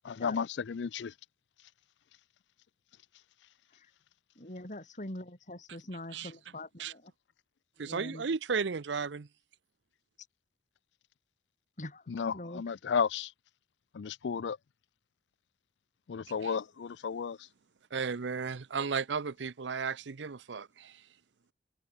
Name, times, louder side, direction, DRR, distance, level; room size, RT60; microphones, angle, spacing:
voice 1, 0.1-1.1 12.1-13.3 13.9-14.6 16.1-17.4, left 6 dB, 80° left, 0.4 m, -33 dB
voice 2, 4.4-7.1 7.8-8.3 11.8-12.6, left 1 dB, 45° left, 5.6 m, -44 dB
voice 3, 7.8-9.3 16.4-16.5 17.9-21.0, right 5 dB, 85° right, 0.6 m, -34 dB
head